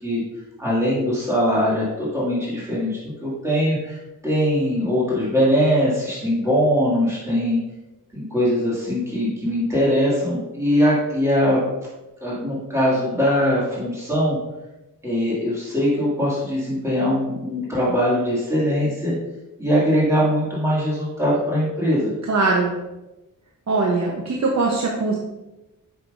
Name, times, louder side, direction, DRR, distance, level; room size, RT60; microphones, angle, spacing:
voice 1, 0.6-4.0 4.2-7.6 8.1-11.6 12.2-14.4 15.0-19.2 19.6-22.1, equal, 10° right, -8 dB, 2.3 m, -21 dB
voice 2, 22.3-22.7 23.7-25.1, right 3 dB, 55° right, -1 dB, 1.0 m, -21 dB
7.5 x 6.0 x 2.6 m, 1.0 s
cardioid pair, 100°, 33 cm